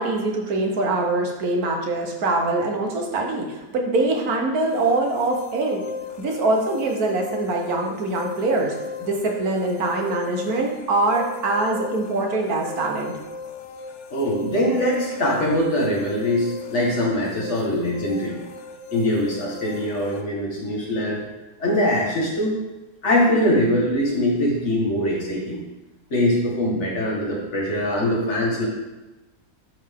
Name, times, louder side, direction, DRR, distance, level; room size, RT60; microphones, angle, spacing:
voice 1, 0.0-5.8 6.2-8.7 9.0-13.1, right 2 dB, 70° right, 1 dB, 1.5 m, -23 dB
sound 1, 4.6-20.2, left 3 dB, 60° left, 0.8 m, -37 dB
voice 2, 14.1-18.4 18.9-21.2 21.6-22.6 23.0-25.6 26.1-28.7, left 1 dB, 45° left, -2 dB, 1.8 m, -22 dB
11.0 x 4.0 x 3.6 m, 1.0 s
omnidirectional pair, 1.7 m